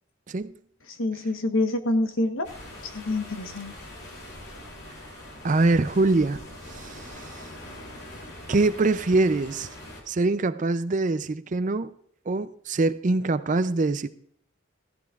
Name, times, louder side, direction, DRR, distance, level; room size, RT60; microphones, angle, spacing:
voice 1, 0.9-2.5 2.8-3.7, left 2 dB, 90° left, 1.2 m, -26 dB
sound 1, 2.4-10.0, left 1 dB, 55° left, 3.1 m, -43 dB
voice 2, 5.4-6.4 6.7-7.3 8.5-9.7 10.1-11.9 12.3-14.1, right 3 dB, 40° right, 0.5 m, -24 dB
17.0 x 14.5 x 2.4 m
head